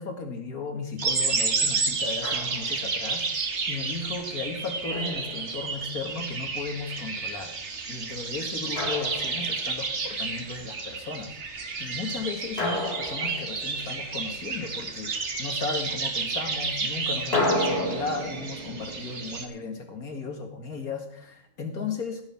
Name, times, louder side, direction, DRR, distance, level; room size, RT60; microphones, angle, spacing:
voice 1, 0.0-7.5 7.9-11.4 11.8-22.2, left 4 dB, 90° left, 4 dB, 2.6 m, -35 dB
sound 1, 1.0-19.5, right 4 dB, 55° right, 1.8 m, -31 dB
Drum, 2.2-2.9 4.9-6.0 8.8-9.9 12.6-14.2 17.3-20.3, left 1 dB, 45° left, 3.2 m, -32 dB
15.5 x 6.6 x 7.6 m, 0.70 s
omnidirectional pair, 1.5 m